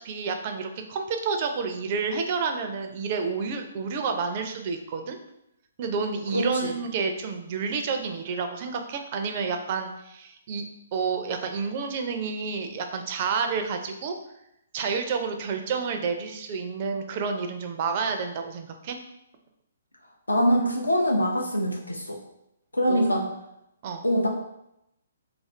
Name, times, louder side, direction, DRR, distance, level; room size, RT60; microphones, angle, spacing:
voice 1, 0.0-5.2 5.8-14.1 14.7-19.0 22.9-23.2 23.8-24.0, right 5 dB, 40° right, 5 dB, 0.4 m, -30 dB
voice 2, 6.3-6.7 20.3-22.2 22.7-23.3 24.0-24.3, equal, 90° left, 0 dB, 0.6 m, -23 dB
2.5 x 2.5 x 3.1 m, 0.82 s
figure-of-eight pair, 130°, 0 cm